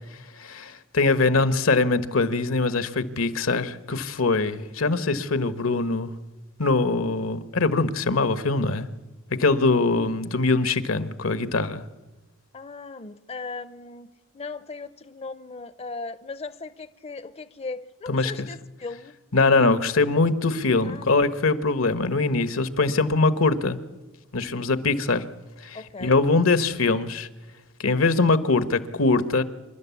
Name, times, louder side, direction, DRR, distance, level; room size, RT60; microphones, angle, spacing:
voice 1, 0.4-6.1 6.6-8.9 9.4-11.8 18.1-18.3 19.3-23.8 24.3-25.2 25.6-27.3 27.8-29.4, left 3 dB, 80° left, 12 dB, 1.3 m, -22 dB
voice 2, 12.5-19.1 20.8-21.1 25.7-26.2, left 3 dB, 30° left, 13 dB, 0.6 m, -38 dB
27.5 x 12.0 x 8.4 m, 1.1 s
head